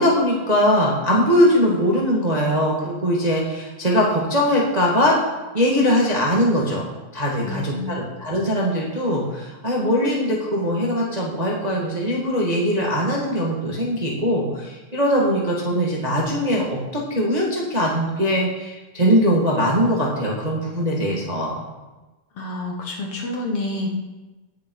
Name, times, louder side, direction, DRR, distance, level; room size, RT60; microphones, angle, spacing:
voice 1, 0.0-5.2 5.5-6.9 7.1-21.6, equal, 20° right, -3 dB, 1.3 m, -21 dB
voice 2, 7.4-8.1 22.4-23.9, left 2 dB, 55° left, 0 dB, 2.2 m, -29 dB
18.0 x 6.8 x 4.7 m, 1.1 s
omnidirectional pair, 3.5 m